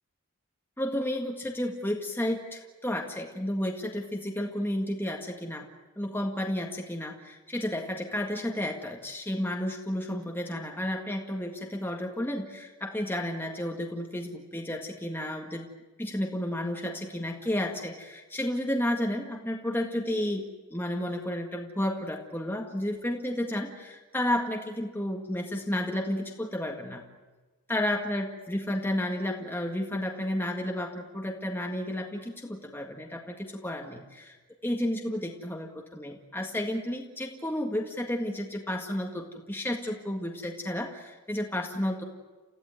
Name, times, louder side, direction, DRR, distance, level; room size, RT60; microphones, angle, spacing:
voice 1, 0.8-5.7 6.0-15.7 16.0-20.4 20.7-27.0 27.7-34.4 34.6-42.0, left 1 dB, 10° left, 1 dB, 1.8 m, -32 dB
30.0 x 15.0 x 9.4 m, 1.2 s
head